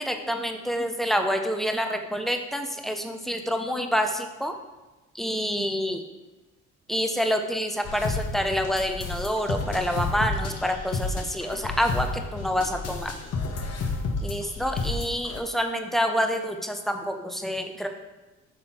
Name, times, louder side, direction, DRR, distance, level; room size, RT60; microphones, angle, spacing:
voice 1, 0.0-4.5 5.1-6.0 6.9-13.1 14.2-17.9, equal, ahead, 5 dB, 0.5 m, -27 dB
sound 1, 7.8-15.4, left 3 dB, 55° left, 0.9 m, -31 dB
5.9 x 3.7 x 4.2 m, 1.1 s
cardioid pair, 90°, 30 cm